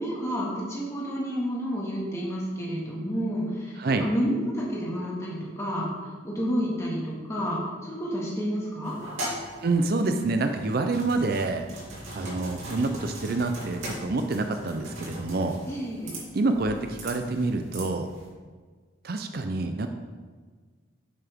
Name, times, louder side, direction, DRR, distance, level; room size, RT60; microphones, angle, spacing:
voice 1, 0.0-5.9 6.2-9.0 15.7-16.1, equal, 15° left, -5 dB, 1.9 m, -30 dB
voice 2, 3.8-4.1 9.6-11.7 12.1-15.6 16.3-18.1 19.0-19.9, right 3 dB, 50° right, 6 dB, 0.5 m, -27 dB
sound 1, 8.8-18.3, equal, 85° right, 2.8 m, -39 dB
10.0 x 7.5 x 3.6 m, 1.5 s
head